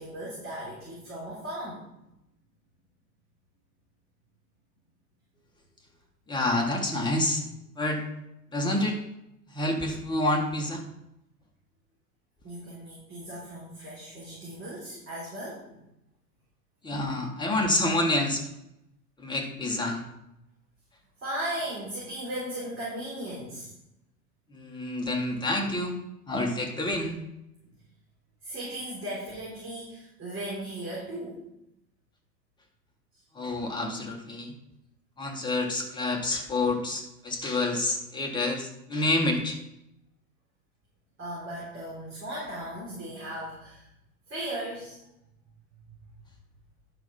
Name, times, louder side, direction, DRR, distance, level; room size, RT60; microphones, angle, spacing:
voice 1, 0.0-1.8 12.4-15.7 21.2-23.7 28.4-31.5 41.2-43.8 44.3-45.0, right 1 dB, 25° right, -7 dB, 3.9 m, -37 dB
voice 2, 6.3-7.4 7.8-8.1 8.5-9.0 9.5-10.8 16.8-18.5 19.2-20.0 24.5-26.0 26.3-27.2 33.3-34.5 35.2-39.6, left 2 dB, 10° left, 1 dB, 1.9 m, -28 dB
11.0 x 5.7 x 5.6 m, 0.84 s
figure-of-eight pair, 90°, 46 cm